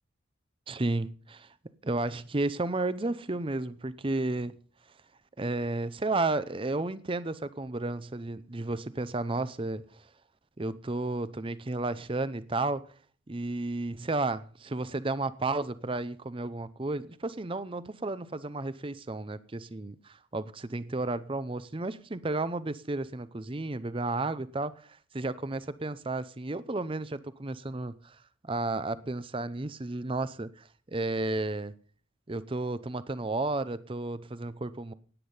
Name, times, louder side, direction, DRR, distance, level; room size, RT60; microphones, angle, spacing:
voice 1, 0.7-1.5 1.8-4.6 5.4-10.1 10.6-12.8 13.3-28.2 28.4-31.7 32.3-34.9, right 2 dB, 25° right, 0.6 m, -32 dB
17.0 x 9.8 x 5.5 m
head